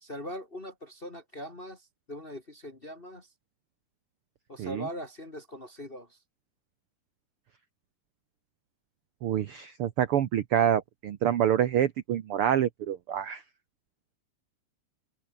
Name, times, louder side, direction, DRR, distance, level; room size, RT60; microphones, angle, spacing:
voice 1, 0.0-3.3 4.5-6.2, equal, 25° left, 1.2 m, -41 dB
voice 2, 9.2-13.4, right 10 dB, 80° right, 1.2 m, -27 dB
open air
omnidirectional pair, 4.0 m